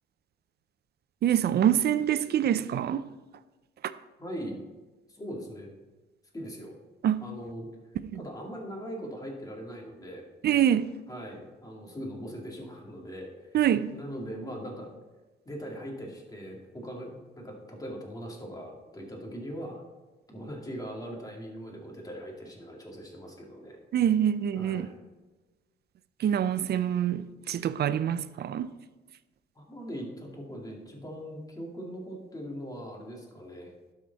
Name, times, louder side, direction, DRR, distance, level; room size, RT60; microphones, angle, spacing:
voice 1, 1.2-3.0 7.0-7.2 8.0-8.2 10.4-10.9 13.5-13.9 23.9-24.9 26.2-28.7, right 10 dB, 55° right, 0.5 m, -25 dB
voice 2, 4.2-4.6 5.1-5.7 6.3-6.8 7.2-7.7 8.2-10.2 11.1-13.6 13.9-14.9 15.4-19.8 20.3-23.8 24.5-25.0 29.6-33.9, equal, 20° left, 2.3 m, -40 dB
12.5 x 5.0 x 4.0 m
cardioid pair, 90°, 20 cm